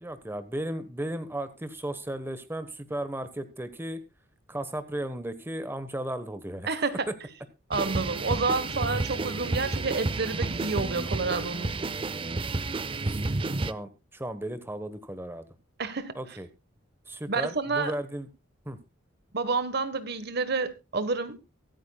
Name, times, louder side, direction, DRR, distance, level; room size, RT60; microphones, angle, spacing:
voice 1, 0.0-4.0 4.5-6.7 7.1-7.2 13.1-13.2 13.6-15.4 16.1-16.5 17.1-18.3 18.6-18.8, right 1 dB, 10° right, 1.1 m, -35 dB
voice 2, 6.7-7.1 7.7-11.7 15.8-16.1 17.3-17.9 19.3-21.4, right 4 dB, 55° right, 1.2 m, -29 dB
sound 1, 7.7-13.7, right 2 dB, 25° right, 0.6 m, -30 dB
23.5 x 9.0 x 2.3 m
head